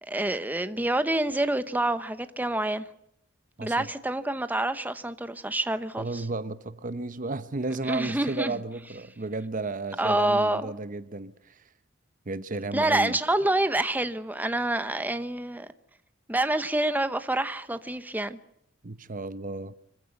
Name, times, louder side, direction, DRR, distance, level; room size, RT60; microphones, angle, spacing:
voice 1, 0.0-2.9 3.6-6.2 7.9-8.5 10.0-10.7 12.7-15.7 16.3-18.4, right 1 dB, 10° right, 1.0 m, -27 dB
voice 2, 6.0-11.6 12.3-13.2 18.8-19.7, right 3 dB, 40° right, 0.9 m, -33 dB
25.5 x 15.5 x 9.6 m
head